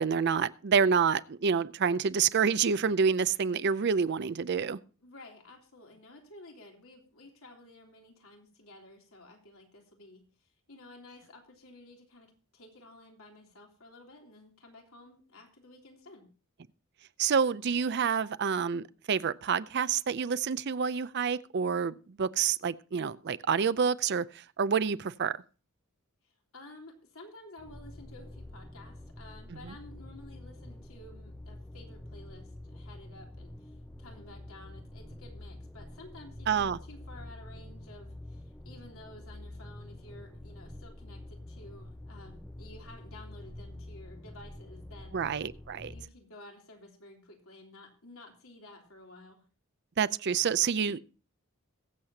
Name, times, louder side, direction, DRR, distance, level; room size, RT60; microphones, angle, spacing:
voice 1, 0.0-4.8 17.2-25.4 29.6-29.7 36.5-36.8 45.1-45.9 50.0-51.0, right 6 dB, 55° right, 0.5 m, -28 dB
voice 2, 5.0-10.2 10.7-16.2 26.2-33.7 34.0-45.2 45.8-49.4, left 2 dB, 80° left, 3.2 m, -52 dB
sound 1, 27.6-46.1, left 1 dB, 5° left, 0.5 m, -47 dB
22.5 x 7.5 x 2.8 m
head